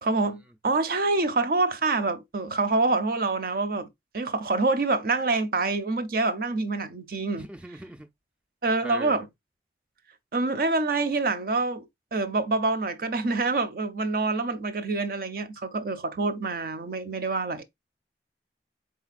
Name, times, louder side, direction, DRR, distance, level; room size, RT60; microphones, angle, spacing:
voice 1, 0.0-3.9 4.1-7.5 8.6-9.3 10.3-17.6, right 3 dB, 55° right, 0.6 m, -26 dB
voice 2, 7.3-8.1 8.8-9.3, right 1 dB, 5° right, 0.3 m, -41 dB
3.9 x 3.9 x 2.4 m
head